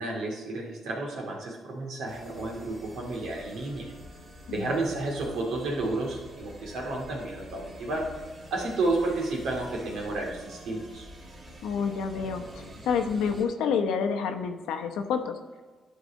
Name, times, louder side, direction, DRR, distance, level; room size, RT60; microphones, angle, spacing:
voice 1, 0.0-3.9 4.5-8.1 8.5-11.0, right 2 dB, 80° right, 0 dB, 2.2 m, -31 dB
sound 1, 2.1-13.5, equal, 40° right, 3.1 m, -47 dB
voice 2, 11.6-15.4, left 6 dB, 90° left, 6 dB, 0.8 m, -29 dB
11.0 x 4.8 x 5.1 m, 1.4 s
cardioid pair, 85°, 0 cm